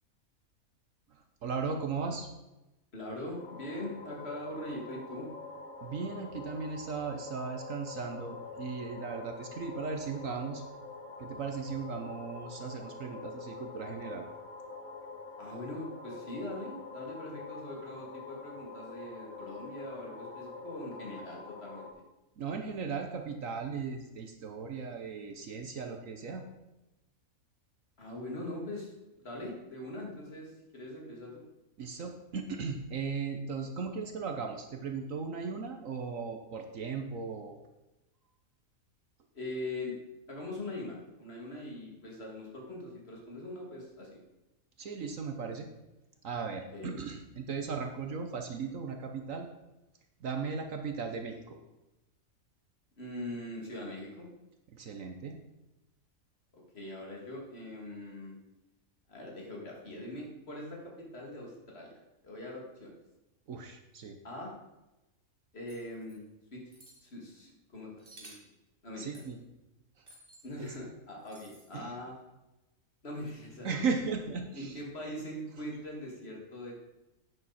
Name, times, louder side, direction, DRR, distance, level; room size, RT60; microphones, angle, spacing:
voice 1, 1.4-2.3 5.8-10.6 11.2-14.3 22.4-26.4 31.8-37.6 44.8-45.7 46.2-49.5 50.2-51.5 54.7-55.4 63.5-64.2 69.0-69.4 70.6-70.7 71.7-71.9 73.6-74.8, right 5 dB, 65° right, 4 dB, 1.3 m, -37 dB
voice 2, 2.9-5.3 15.4-21.9 28.0-31.4 39.3-40.0 40.3-44.2 46.7-47.0 53.0-54.3 56.7-58.3 59.1-61.9 62.2-62.9 64.2-64.5 65.5-66.2 66.5-66.6 67.0-68.3 68.8-69.0 70.4-72.1 73.0-73.8 74.6-76.7, left 1 dB, 45° left, -2 dB, 2.7 m, -42 dB
sound 1, 3.4-21.9, left 4 dB, 70° left, 2.0 m, -46 dB
sound 2, 65.7-66.2 66.7-67.0 68.0-68.5 69.1-69.3 70.1-70.5 71.2-71.8, right 2 dB, 35° right, 2.3 m, -55 dB
10.5 x 9.1 x 4.2 m, 1.0 s
omnidirectional pair, 1.5 m